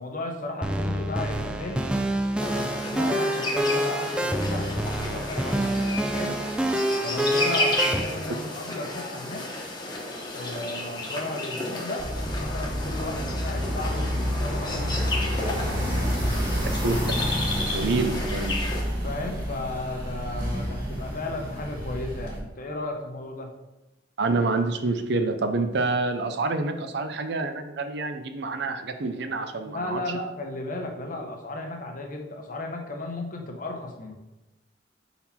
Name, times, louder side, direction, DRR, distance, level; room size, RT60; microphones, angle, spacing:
voice 1, 0.0-1.9 2.3-6.5 7.0-9.4 10.3-12.0 12.3-16.6 19.0-23.5 29.7-34.1, left 2 dB, 50° left, 2 dB, 1.0 m, -35 dB
sound 1, 0.6-8.0, right 1 dB, 5° right, 0.3 m, -27 dB
sound 2, 2.4-18.8, left 2 dB, 25° left, 1.2 m, -32 dB
sound 3, 12.0-22.4, equal, 50° right, 1.9 m, -29 dB
voice 2, 17.7-18.6 24.2-30.0, right 3 dB, 65° right, 8 dB, 0.6 m, -27 dB
5.7 x 4.2 x 4.3 m, 0.97 s
head